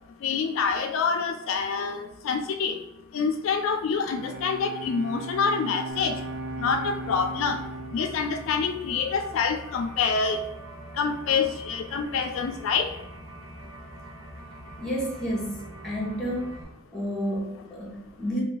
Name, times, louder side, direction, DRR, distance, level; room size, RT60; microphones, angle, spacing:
voice 1, 0.2-2.7 3.1-6.2 6.6-7.6 7.9-10.4 11.0-12.9, left 5 dB, 70° left, 5 dB, 0.3 m, -26 dB
Bowed string instrument, 3.9-9.6, right 2 dB, 55° right, 0.3 m, -38 dB
sound 1, 5.9-16.6, right 1 dB, 75° right, 1.0 m, -44 dB
voice 2, 14.8-16.5 16.9-18.4, equal, 5° left, -4 dB, 0.8 m, -31 dB
2.5 x 2.2 x 3.9 m, 0.91 s
head